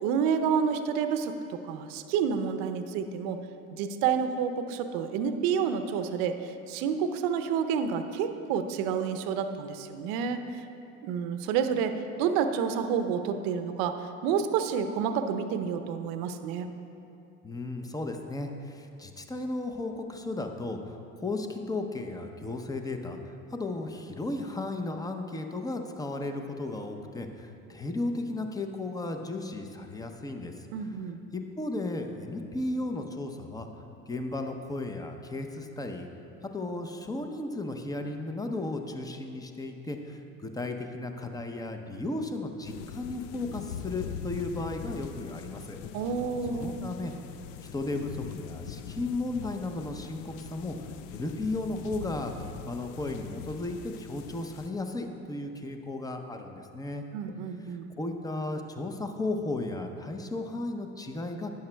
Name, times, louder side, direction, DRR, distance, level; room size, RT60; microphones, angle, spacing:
voice 1, 0.0-3.4 3.7-10.7 11.0-16.7 30.7-31.2 45.9-46.9 57.1-57.9, right 7 dB, 60° right, 8 dB, 0.7 m, -29 dB
voice 2, 17.4-30.7 31.3-33.7 34.1-36.1 36.4-45.8 46.5-47.1 47.7-57.0 58.0-61.5, left 2 dB, 10° left, 5 dB, 0.6 m, -35 dB
sound 1, 42.6-54.7, left 8 dB, 65° left, 0.5 m, -42 dB
12.0 x 8.7 x 2.2 m, 2.7 s
hypercardioid pair, 80°, 41 cm